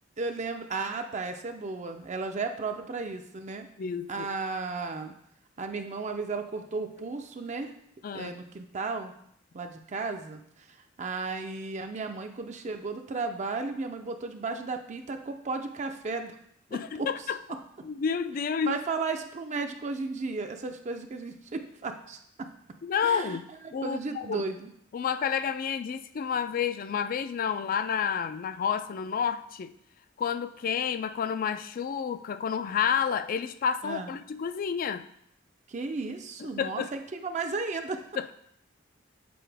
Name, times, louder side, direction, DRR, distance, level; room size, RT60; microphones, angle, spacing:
voice 1, 0.2-3.7 4.1-5.1 5.6-7.8 8.1-9.1 9.5-10.4 10.7-16.4 16.7-17.1 18.7-22.5 23.0-23.4 23.6-24.7 33.8-34.1 35.7-38.0, right 3 dB, 40° right, 5 dB, 0.5 m, -34 dB
voice 2, 3.8-4.3 8.0-8.3 16.7-17.4 17.8-18.8 22.8-23.5 23.7-24.4 24.9-29.7 30.2-35.1 36.4-36.9 38.2-38.3, left 7 dB, 45° left, 12 dB, 0.3 m, -30 dB
7.7 x 4.5 x 3.4 m, 0.71 s
head